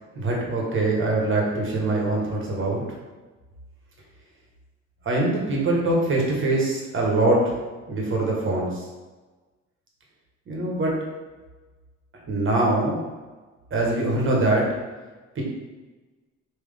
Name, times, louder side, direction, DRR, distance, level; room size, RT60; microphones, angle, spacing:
voice 1, 0.1-2.8 5.0-7.5 7.9-8.9 10.5-11.0 12.3-13.0 13.7-14.7 15.3-15.4, right 2 dB, 40° right, -2 dB, 1.3 m, -23 dB
3.6 x 3.0 x 3.4 m, 1.3 s
cardioid pair, 90°, 30 cm